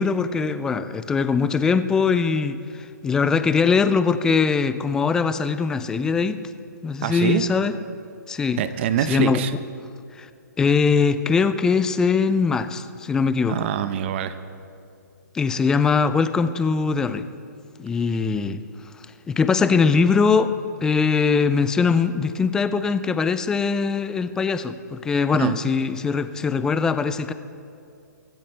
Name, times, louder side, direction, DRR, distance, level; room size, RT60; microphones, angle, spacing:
voice 1, 0.0-6.4 6.8-7.7 8.3-8.6 9.1-9.4 10.2-10.3 10.6-13.7 15.3-17.3 17.8-18.6 19.3-20.5 20.8-27.3, left 5 dB, 5° left, 12 dB, 0.3 m, -21 dB
voice 2, 7.0-7.4 8.6-9.5 13.5-14.4 25.4-25.6, right 10 dB, 40° right, 12 dB, 0.8 m, -24 dB
23.5 x 13.0 x 3.3 m, 2.5 s
hypercardioid pair, 155°, 10 cm